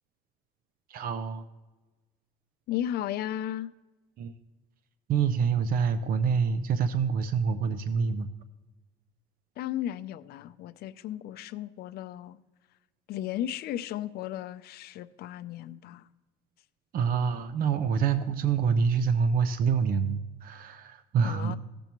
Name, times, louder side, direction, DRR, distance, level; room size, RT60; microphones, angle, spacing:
voice 1, 0.9-1.4 4.2-4.3 5.1-8.3 16.9-21.6, right 6 dB, 60° right, 0.6 m, -26 dB
voice 2, 2.7-3.7 9.6-12.4 13.1-16.1 21.2-21.6, left 12 dB, 70° left, 0.5 m, -35 dB
15.5 x 6.9 x 3.0 m
cardioid pair, 110°, 17 cm